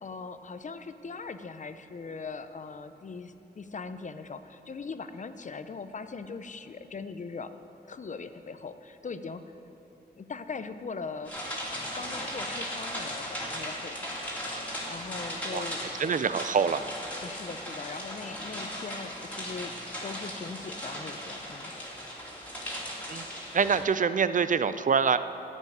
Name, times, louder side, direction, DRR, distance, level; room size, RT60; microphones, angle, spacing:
voice 1, 0.0-7.5 7.9-9.4 10.2-11.3 11.9-14.1 14.9-15.8 17.2-21.7, left 4 dB, 45° left, 11 dB, 0.6 m, -40 dB
sound 1, 11.2-23.8, equal, 10° left, 2.6 m, -37 dB
voice 2, 16.0-16.8 23.1-23.2 23.5-25.2, right 6 dB, 50° right, 12 dB, 0.4 m, -25 dB
13.5 x 5.5 x 9.3 m, 2.9 s
wide cardioid pair, 95°, 18 cm